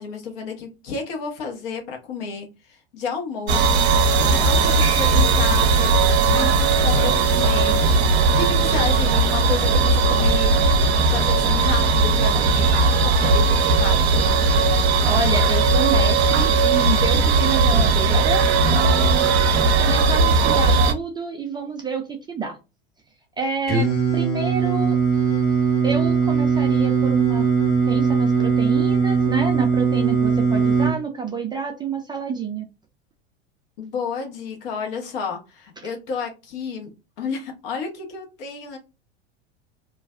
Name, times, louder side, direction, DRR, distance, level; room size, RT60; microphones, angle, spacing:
voice 1, 0.0-6.0 6.3-10.8 11.1-14.2 33.8-36.9 37.2-38.8, left 5 dB, 60° left, 2 dB, 1.0 m, -31 dB
sound 1, 3.5-20.9, right 3 dB, 85° right, 0.5 m, -18 dB
voice 2, 15.0-19.4 19.8-22.6 23.4-25.0 25.8-27.5 27.9-32.7, right 5 dB, 15° right, 3 dB, 0.3 m, -28 dB
Singing, 23.7-30.9, right 5 dB, 30° left, 1.2 m, -20 dB
2.4 x 2.2 x 2.4 m, 0.28 s
hypercardioid pair, 90°, 32 cm